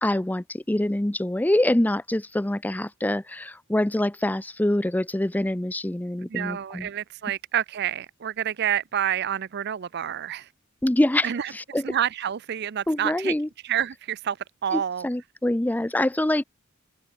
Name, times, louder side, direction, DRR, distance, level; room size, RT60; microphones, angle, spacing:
voice 1, 0.0-6.9 10.8-11.8 12.9-13.5 14.7-16.4, left 1 dB, 10° left, 0.5 m, -25 dB
voice 2, 6.3-10.5 11.2-11.5 11.8-13.3 13.6-14.4 14.6-15.1, right 9 dB, 55° right, 0.5 m, -28 dB
open air
head